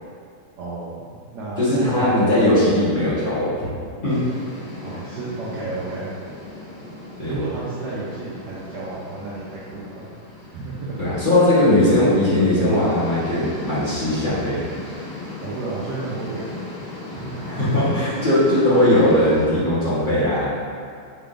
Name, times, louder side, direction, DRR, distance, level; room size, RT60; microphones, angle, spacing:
voice 1, 0.6-2.3 4.8-6.1 7.3-10.1 10.5-11.0 15.4-17.6 18.0-18.5, right 3 dB, 65° right, -8 dB, 1.0 m, -32 dB
voice 2, 1.6-3.5 4.0-4.2 7.2-7.3 11.0-14.6 17.4-20.5, left 1 dB, 30° left, -12 dB, 1.0 m, -19 dB
sound 1, 4.1-19.5, left 2 dB, 90° left, 2.5 m, -38 dB
5.5 x 3.5 x 2.5 m, 2.3 s
omnidirectional pair, 2.4 m